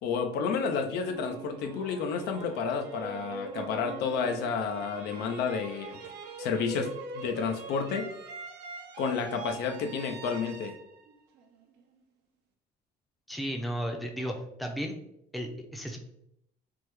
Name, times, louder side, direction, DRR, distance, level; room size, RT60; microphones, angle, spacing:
voice 1, 0.0-6.0 6.4-8.1 9.0-10.8, left 5 dB, 80° left, 6 dB, 0.5 m, -31 dB
sound 1, 1.0-12.0, right 3 dB, 85° right, 0.6 m, -43 dB
voice 2, 13.3-15.0 15.3-16.0, equal, ahead, 2 dB, 0.5 m, -34 dB
3.4 x 2.2 x 3.0 m, 0.75 s
cardioid pair, 110°, 17 cm